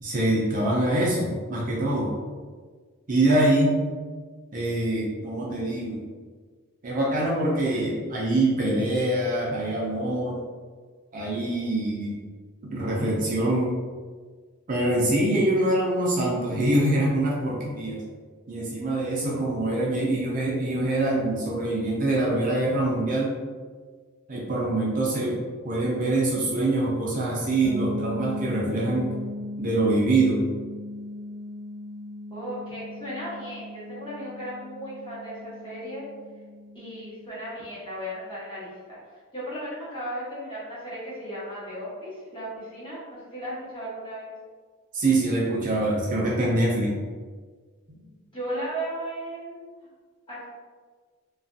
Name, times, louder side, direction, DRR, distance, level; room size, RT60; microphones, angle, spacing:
voice 1, 0.0-2.1 3.1-3.8 4.5-6.0 6.8-10.4 11.1-12.2 12.6-13.8 14.7-18.0 18.5-23.3 24.3-29.1 29.6-30.4 44.9-47.0, right 1 dB, 40° right, -4 dB, 0.5 m, -24 dB
sound 1, 27.6-37.3, left 1 dB, 55° left, 1.1 m, -37 dB
voice 2, 32.3-36.0 36.7-39.0 39.3-44.3 47.9-48.0 48.3-49.7 50.3-50.4, equal, 25° left, -10 dB, 1.0 m, -36 dB
2.4 x 2.3 x 2.5 m, 1.5 s
head